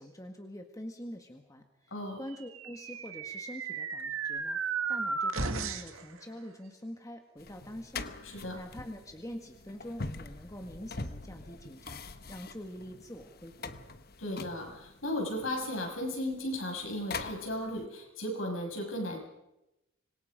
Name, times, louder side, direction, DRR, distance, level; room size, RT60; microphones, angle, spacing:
voice 1, 0.0-1.6 2.2-8.0 8.5-12.0 12.3-13.8, equal, 15° left, 4 dB, 1.7 m, -45 dB
voice 2, 1.9-2.2 8.2-8.6 14.2-19.2, left 1 dB, 75° left, 2 dB, 7.2 m, -35 dB
sound 1, 2.4-6.0, right 4 dB, 85° right, 2.1 m, -34 dB
sound 2, 7.4-17.8, left 3 dB, 45° left, 1.1 m, -44 dB
26.0 x 22.0 x 5.2 m, 0.90 s
head